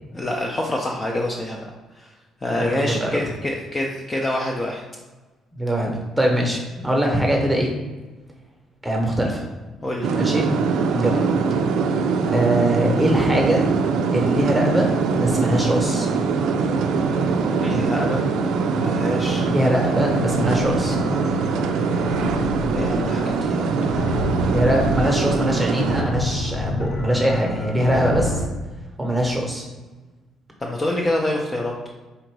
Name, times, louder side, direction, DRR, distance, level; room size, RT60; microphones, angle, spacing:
voice 1, 0.1-2.1 2.4-4.8 9.8-10.1 17.6-18.3 18.8-19.5 22.7-23.7 30.6-31.7, left 1 dB, 20° left, -1 dB, 0.4 m, -26 dB
voice 2, 2.5-3.2 5.5-7.7 8.8-9.5 10.1-10.5 10.9-11.3 12.3-13.6 14.1-16.1 19.4-21.0 22.6-22.7 24.5-28.4 29.0-29.7, equal, 5° right, 0 dB, 0.9 m, -22 dB
sound 1, 10.0-26.0, right 4 dB, 75° right, 0.4 m, -22 dB
Battle - Cinematic soundtrack music atmo background, 19.0-28.5, left 1 dB, 75° left, 0.7 m, -29 dB
3.9 x 2.5 x 4.6 m, 1.2 s
cardioid pair, 135°, 0 cm